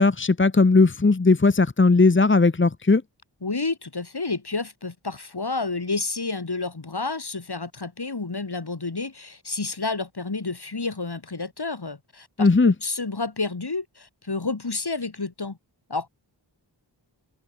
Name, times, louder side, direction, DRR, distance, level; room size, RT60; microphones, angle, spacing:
voice 1, 0.0-3.0 12.4-12.7, left 3 dB, 25° left, 1.0 m, -18 dB
voice 2, 3.4-15.6 15.9-16.1, left 3 dB, 55° left, 7.8 m, -30 dB
open air
cardioid pair, 40°, 45 cm